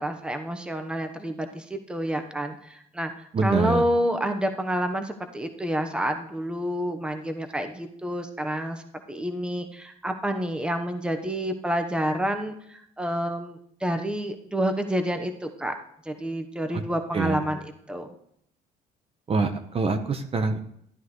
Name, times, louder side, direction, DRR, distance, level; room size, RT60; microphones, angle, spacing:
voice 1, 0.0-8.8 9.1-15.7 16.0-17.6 17.9-18.1, equal, 5° right, 6 dB, 1.0 m, -29 dB
voice 2, 3.3-3.8 17.1-17.4 19.3-20.6, right 4 dB, 35° right, 7 dB, 1.0 m, -25 dB
13.5 x 9.4 x 3.2 m, 0.71 s
cardioid pair, 110°, 17 cm